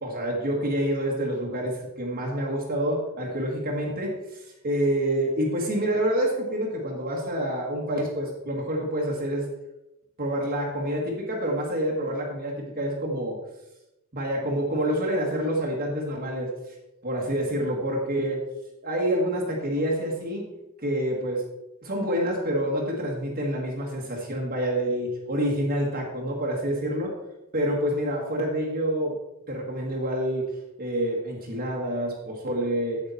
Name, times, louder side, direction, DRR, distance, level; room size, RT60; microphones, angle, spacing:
voice 1, 0.0-9.5 10.2-13.4 14.1-16.5 17.0-18.4 18.8-20.4 20.8-21.4 21.8-27.1 27.5-29.1 29.5-30.5 30.8-33.0, right 1 dB, 45° right, -2 dB, 1.5 m, -27 dB
8.3 x 7.7 x 4.1 m, 0.92 s
head